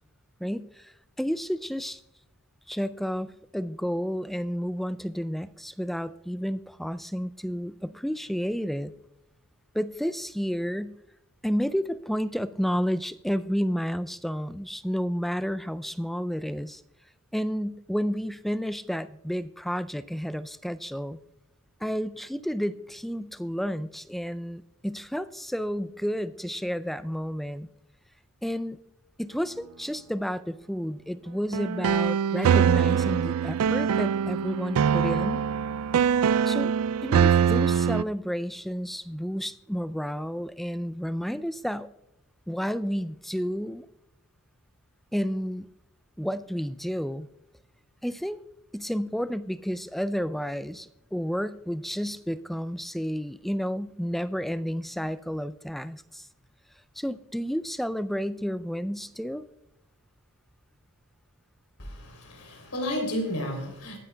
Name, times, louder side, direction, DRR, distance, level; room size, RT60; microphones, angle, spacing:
voice 1, 0.4-2.0 2.7-8.9 9.7-11.0 11.4-16.8 17.3-21.2 21.8-27.7 28.4-28.8 29.2-35.4 36.5-36.7 37.0-41.9 42.5-43.8 45.1-45.7 46.2-47.3 48.0-48.4 48.7-56.3 57.0-59.5, equal, ahead, 14 dB, 0.3 m, -31 dB
sound 1, 31.5-38.0, right 7 dB, 80° right, 0.3 m, -23 dB
voice 2, 61.8-64.0, equal, 75° left, 3 dB, 3.3 m, -32 dB
19.5 x 9.5 x 2.3 m, 0.87 s
head